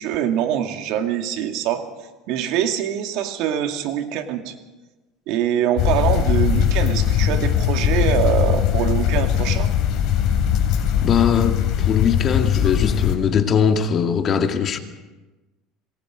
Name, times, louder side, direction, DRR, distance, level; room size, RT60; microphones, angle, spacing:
voice 1, 0.0-1.8 2.3-4.5 5.3-9.7, right 10 dB, 70° right, 2.3 m, -24 dB
sound 1, 5.8-13.2, left 9 dB, 60° left, 3.9 m, -20 dB
voice 2, 11.0-14.8, left 7 dB, 40° left, 2.1 m, -20 dB
26.5 x 20.0 x 5.1 m
supercardioid pair, 115°, 0 cm